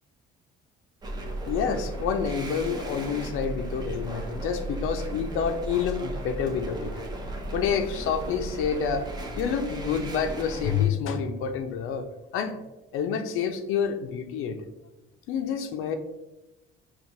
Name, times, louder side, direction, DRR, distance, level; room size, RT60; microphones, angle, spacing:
sound 1, 1.0-10.9, right 1 dB, 20° right, 0.5 m, -35 dB
voice 1, 1.5-6.9 7.5-12.1 12.3-12.6 12.9-14.6 15.3-15.9, left 7 dB, 75° left, 7 dB, 0.5 m, -28 dB
5.9 x 2.3 x 2.7 m, 0.96 s
cardioid pair, 155°, 21 cm